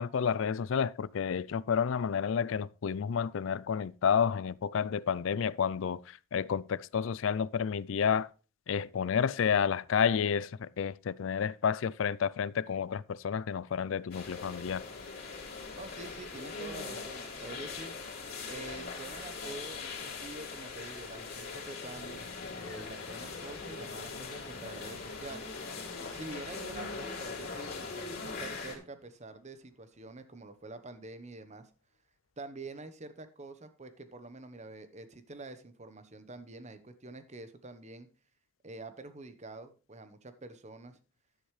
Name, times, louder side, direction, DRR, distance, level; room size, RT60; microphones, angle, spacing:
voice 1, 0.0-6.0 6.3-8.3 8.7-14.8, left 7 dB, 65° left, 0.4 m, -30 dB
sound 1, 14.1-28.8, left 4 dB, 50° left, 3.6 m, -41 dB
voice 2, 15.7-17.9 18.5-22.2 22.6-25.5 26.1-31.7 32.4-38.1 38.6-41.0, right 2 dB, 35° right, 1.0 m, -46 dB
sound 2, 21.6-29.6, left 4 dB, 85° left, 1.3 m, -52 dB
11.0 x 10.0 x 3.2 m
head